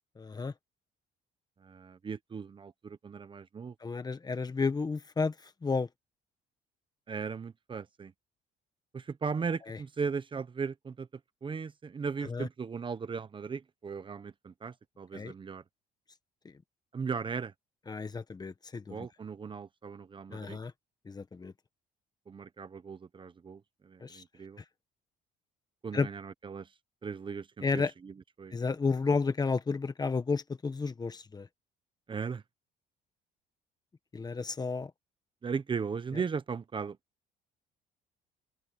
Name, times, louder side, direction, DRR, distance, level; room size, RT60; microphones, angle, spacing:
voice 1, 0.2-0.5 3.8-5.9 9.7-9.8 12.2-12.5 15.1-15.3 17.9-19.1 20.3-20.7 21.0-21.5 24.0-24.2 25.9-26.1 27.6-27.9 28.5-31.5 34.1-34.9, left 4 dB, 25° left, 1.5 m, -32 dB
voice 2, 1.6-3.7 7.1-8.1 8.9-11.1 11.4-15.6 16.9-17.5 18.9-20.6 22.3-24.6 25.8-26.7 27.0-28.1 28.4-28.6 32.1-32.4 35.4-37.0, right 5 dB, 30° right, 1.1 m, -37 dB
open air
cardioid pair, 110°, 17 cm